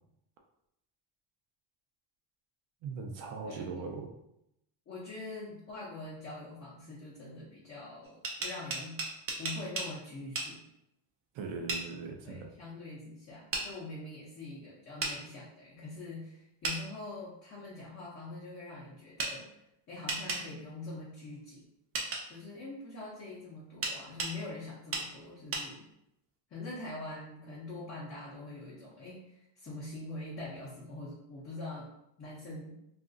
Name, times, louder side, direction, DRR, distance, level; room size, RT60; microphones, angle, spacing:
voice 1, 2.8-4.1 11.3-12.5, right 4 dB, 70° right, 3 dB, 0.6 m, -39 dB
voice 2, 3.4-3.9 4.9-9.0 9.4-10.6 12.2-19.5 19.9-21.7 22.3-25.9 26.5-31.9 32.2-32.8, left 2 dB, 30° left, -6 dB, 0.6 m, -44 dB
sound 1, 8.0-9.9 10.4-10.5 11.7-11.8 13.5-13.7 15.0-15.2 16.6-16.8 19.2-19.3 20.1-20.4 21.9-22.2 23.8-24.3 24.9-25.1 25.5-25.7, right 3 dB, 30° right, 0.4 m, -34 dB
2.8 x 2.5 x 2.5 m, 0.81 s
cardioid pair, 145°, 47 cm